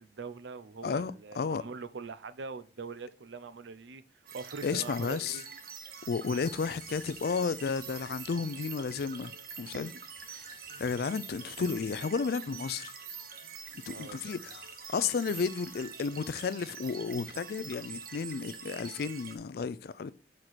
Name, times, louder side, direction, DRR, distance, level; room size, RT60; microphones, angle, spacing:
voice 1, 0.0-4.0 4.3-5.4 9.7-9.8 10.7-10.8 13.4-13.5 13.9-14.4, right 4 dB, 85° right, 0.6 m, -43 dB
voice 2, 0.8-1.6 4.6-5.4 6.1-9.9 10.3-10.4 10.8-12.9 13.9-20.1, left 5 dB, 60° left, 0.4 m, -33 dB
sound 1, 3.0-3.1 6.4-8.3 10.2-12.0 13.7-15.7, left 3 dB, 10° left, 1.2 m, -56 dB
sound 2, 4.3-19.4, right 6 dB, 55° right, 0.8 m, -45 dB
6.4 x 4.5 x 4.1 m
head